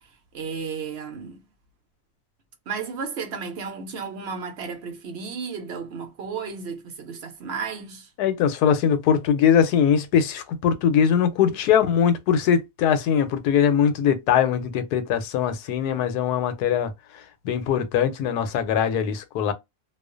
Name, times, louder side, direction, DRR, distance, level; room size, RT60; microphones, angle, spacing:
voice 1, 0.3-1.4 2.7-8.1, right 5 dB, 55° right, 0.8 m, -33 dB
voice 2, 8.2-19.5, left 8 dB, 90° left, 1.1 m, -21 dB
2.4 x 2.4 x 2.3 m
omnidirectional pair, 1.6 m